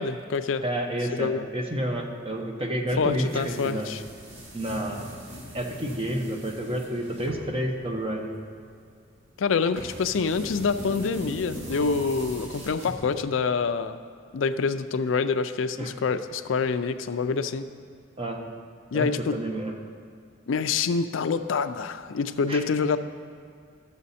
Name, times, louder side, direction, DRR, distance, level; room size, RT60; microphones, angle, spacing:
voice 1, 0.0-0.6 1.2-1.4 3.0-4.0 9.4-14.0 14.3-17.6 18.9-19.3 20.5-23.0, left 5 dB, 80° left, 10 dB, 0.4 m, -26 dB
voice 2, 0.6-3.9 4.5-5.2 5.5-8.3 15.8-15.9 18.2-18.4 18.9-19.7 22.5-22.6, right 1 dB, 30° right, 2 dB, 1.0 m, -30 dB
sound 1, 2.8-13.5, equal, 90° right, 1.7 m, -41 dB
12.5 x 7.0 x 4.2 m, 2.3 s
head